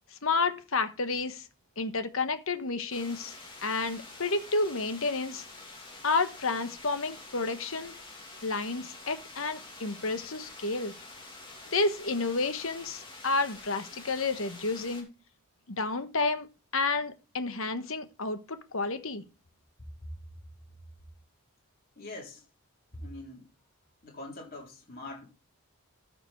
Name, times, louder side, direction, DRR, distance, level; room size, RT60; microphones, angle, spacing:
voice 1, 0.2-1.4 1.8-3.3 3.6-5.4 6.0-7.9 8.4-10.9 11.7-15.1 15.7-16.5 16.7-19.2, left 3 dB, 65° left, 1.2 m, -30 dB
sound 1, 2.9-15.0, left 3 dB, 20° left, 2.7 m, -47 dB
voice 2, 22.0-22.5 22.9-23.6 24.0-25.2, left 1 dB, 40° left, 3.9 m, -43 dB
14.0 x 5.9 x 4.5 m
head